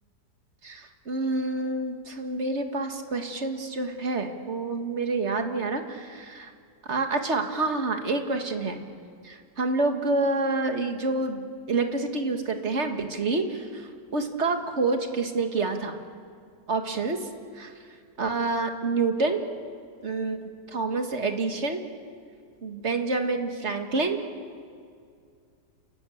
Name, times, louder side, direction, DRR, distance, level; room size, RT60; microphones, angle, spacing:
voice 1, 0.6-6.5 6.9-8.8 9.2-15.9 16.7-17.3 17.6-17.7 18.2-19.4 20.0-21.8 22.6-24.2, right 3 dB, 45° right, 5 dB, 1.9 m, -28 dB
29.5 x 14.5 x 8.5 m, 2.2 s
omnidirectional pair, 1.8 m